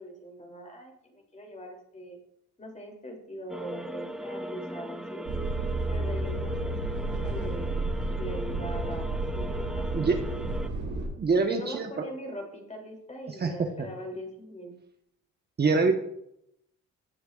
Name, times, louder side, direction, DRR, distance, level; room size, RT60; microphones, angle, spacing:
voice 1, 0.0-2.2 2.6-5.3 5.9-7.8 8.2-9.9 11.5-14.7, equal, 25° left, 1 dB, 3.0 m, -41 dB
sound 1, 3.5-10.7, equal, ahead, 0.6 m, -38 dB
sound 2, 5.3-11.1, right 2 dB, 85° right, 3.7 m, -32 dB
voice 2, 11.2-12.0 13.3-13.9 15.6-15.9, right 4 dB, 35° right, 4 dB, 1.1 m, -25 dB
17.0 x 6.7 x 2.4 m, 0.76 s
cardioid pair, 90°, 30 cm